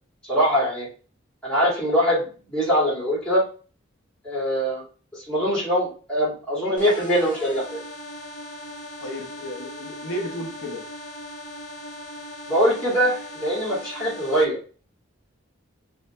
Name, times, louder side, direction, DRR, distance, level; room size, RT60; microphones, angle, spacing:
voice 1, 0.2-0.9 1.4-3.4 4.2-4.8 5.3-7.8 12.5-14.6, equal, 5° left, -7 dB, 1.9 m, -22 dB
sound 1, 6.8-14.4, left 1 dB, 40° left, 0.7 m, -38 dB
voice 2, 9.0-10.8, left 1 dB, 80° left, 2 dB, 0.8 m, -33 dB
5.3 x 2.7 x 2.2 m, 0.38 s
head